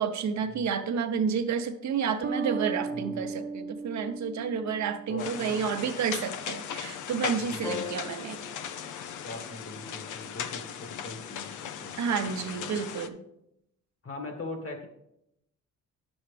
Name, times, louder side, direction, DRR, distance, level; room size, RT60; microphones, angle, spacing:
voice 1, 0.0-8.4 12.0-13.2, right 6 dB, 65° right, 7 dB, 0.9 m, -30 dB
sound 1, 2.2-5.6, right 4 dB, 35° right, 0.6 m, -36 dB
voice 2, 2.9-3.2 5.1-5.7 7.5-7.9 9.2-11.9 12.4-12.8 14.0-14.9, left 2 dB, 50° left, 4 dB, 1.7 m, -41 dB
sound 2, 5.2-13.1, left 8 dB, 80° left, 0.6 m, -38 dB
sound 3, 7.6-10.2 12.4-12.5, left 3 dB, 10° left, 0.7 m, -41 dB
10.0 x 7.2 x 3.3 m, 0.81 s
cardioid pair, 90°, 30 cm